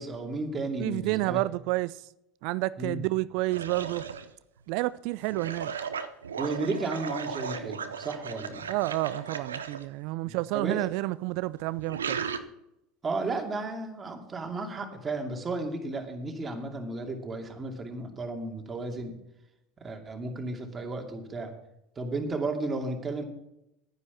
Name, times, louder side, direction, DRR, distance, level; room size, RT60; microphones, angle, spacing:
voice 1, 0.0-1.4 2.8-3.0 6.4-8.7 10.2-10.9 13.0-19.1 19.8-21.5 22.0-23.2, right 3 dB, 25° right, 2.6 m, -33 dB
voice 2, 0.8-2.0 2.4-4.0 4.7-5.7 8.7-12.3, right 20 dB, 65° right, 0.3 m, -30 dB
sound 1, 3.5-4.3 5.3-9.8 11.3-12.4, right 6 dB, 90° right, 0.8 m, -36 dB
10.5 x 9.9 x 5.9 m
hypercardioid pair, 80°, 0 cm